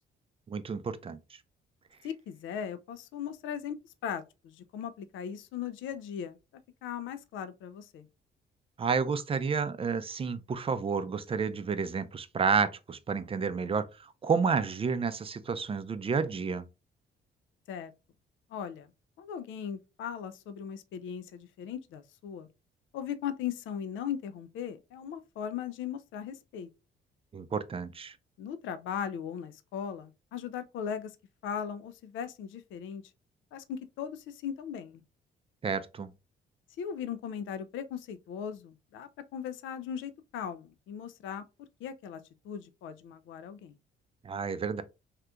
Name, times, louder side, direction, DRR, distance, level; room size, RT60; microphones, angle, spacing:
voice 1, 0.5-1.4 8.8-16.7 27.3-28.2 35.6-36.1 44.2-44.8, right 5 dB, 30° right, 0.4 m, -30 dB
voice 2, 2.0-6.4 6.8-8.1 17.7-17.9 18.5-18.9 19.2-22.5 22.9-26.7 28.4-31.2 31.4-33.0 33.5-35.0 36.8-41.4 41.8-43.7, left 8 dB, 75° left, 0.4 m, -38 dB
2.8 x 2.4 x 3.4 m
cardioid pair, 90°, 20 cm